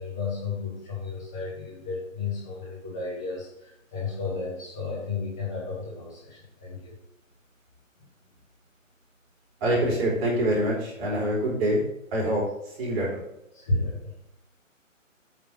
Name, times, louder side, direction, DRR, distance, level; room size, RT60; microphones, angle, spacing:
voice 1, 0.0-6.9 12.1-12.4 12.8-12.9 13.5-14.1, left 3 dB, 5° left, -7 dB, 0.5 m, -33 dB
voice 2, 9.6-11.8 12.1-12.4 12.8-13.2, right 1 dB, 25° right, -5 dB, 4.4 m, -25 dB
8.7 x 6.5 x 5.5 m, 0.80 s
hypercardioid pair, 155°, 40 cm